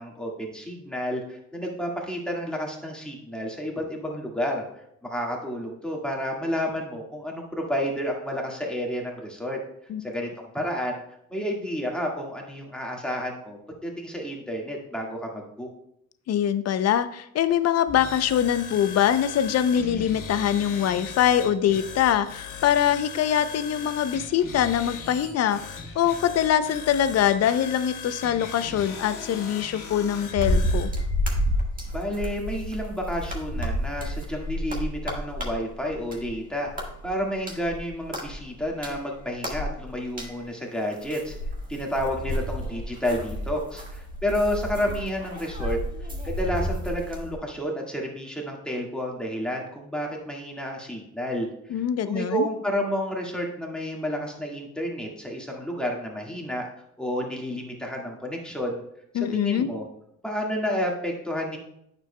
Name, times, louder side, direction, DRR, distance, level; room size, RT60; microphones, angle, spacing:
voice 1, 0.0-4.6 5.0-9.6 10.0-11.0 11.3-15.7 31.9-41.4 41.7-45.8 46.2-56.7 57.0-58.8 59.3-59.8 60.2-61.6, equal, 5° left, -1 dB, 1.7 m, -30 dB
voice 2, 16.3-30.9 51.7-52.5 59.1-59.7, left 10 dB, 55° left, 13 dB, 0.5 m, -23 dB
sound 1, 17.9-30.9, left 5 dB, 80° left, 1.4 m, -39 dB
sound 2, 30.4-36.4 36.7-40.4 40.9-47.4, equal, 30° right, 1.6 m, -30 dB
9.0 x 6.8 x 2.2 m, 0.76 s
cardioid pair, 90°, 30 cm